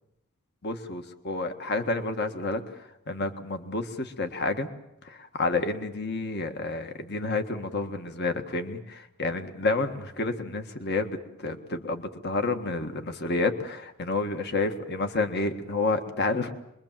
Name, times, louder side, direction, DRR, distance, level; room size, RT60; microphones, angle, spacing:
voice 1, 0.6-2.6 3.1-4.7 5.0-16.5, left 3 dB, 50° left, 7 dB, 1.7 m, -29 dB
27.0 x 22.5 x 7.5 m, 0.87 s
head